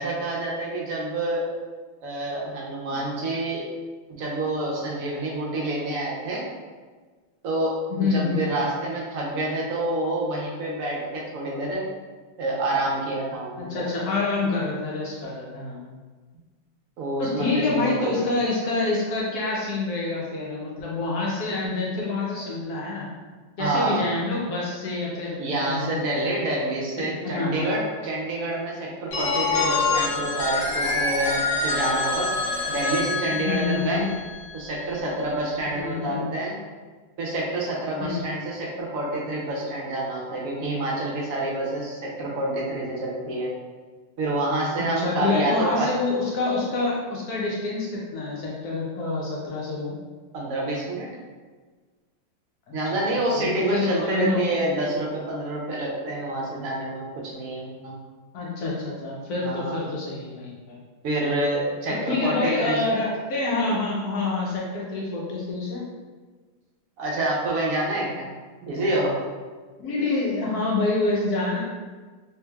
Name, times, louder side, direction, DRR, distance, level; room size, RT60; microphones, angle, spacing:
voice 1, 0.0-1.5 2.0-3.6 4.2-6.4 7.4-7.7 8.0-11.8 12.4-13.8 17.0-18.1 23.6-24.1 25.4-32.3 32.7-34.0 34.5-36.5 37.2-43.5 44.2-45.9 50.3-51.1 52.7-57.9 59.4-59.8 61.0-62.8 67.0-68.3 68.6-69.2, right 1 dB, 65° right, -3 dB, 0.8 m, -27 dB
voice 2, 7.9-8.6 13.6-15.8 17.2-23.1 23.6-26.0 27.0-27.7 33.3-34.0 35.7-36.3 38.0-38.3 45.0-50.0 52.9-54.4 58.3-60.8 62.1-65.8 69.8-71.6, left 3 dB, 70° left, -4 dB, 0.9 m, -27 dB
Telephone, 29.1-34.9, left 3 dB, 90° left, 1.4 m, -26 dB
3.3 x 3.2 x 2.2 m, 1.4 s
omnidirectional pair, 2.1 m